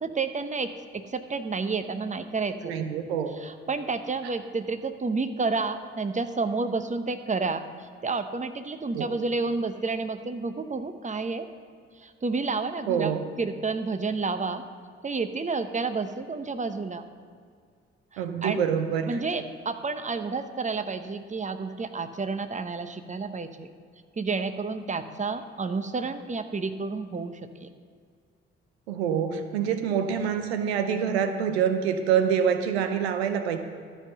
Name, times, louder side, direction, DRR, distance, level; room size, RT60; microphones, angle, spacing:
voice 1, 0.0-2.7 3.4-11.5 12.0-13.1 13.4-14.6 15.0-17.0 18.1-18.6 19.1-23.7 24.2-27.7, right 4 dB, 25° right, 10 dB, 0.9 m, -30 dB
voice 2, 2.6-3.3 4.2-4.3 8.9-9.1 12.9-13.2 18.2-19.2 28.9-33.6, right 7 dB, 85° right, 8 dB, 0.6 m, -26 dB
12.5 x 5.6 x 6.7 m, 2.2 s
hypercardioid pair, 40°, 31 cm